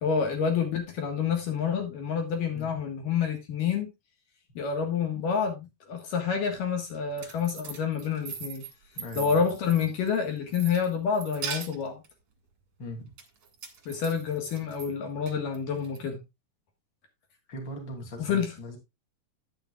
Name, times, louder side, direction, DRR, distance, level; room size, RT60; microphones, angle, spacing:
voice 1, 0.0-3.9 4.6-8.6 9.2-12.0 13.9-16.2 18.2-18.5, left 6 dB, 65° left, 3 dB, 2.8 m, -28 dB
sound 1, 6.9-10.2 10.5-12.1 13.2-14.9 15.3-16.0, right 6 dB, 50° right, 1.9 m, -40 dB
voice 2, 9.0-9.4 12.8-13.1 17.5-18.8, equal, 30° left, 1 dB, 3.0 m, -39 dB
10.5 x 9.7 x 2.4 m, 0.23 s
omnidirectional pair, 4.6 m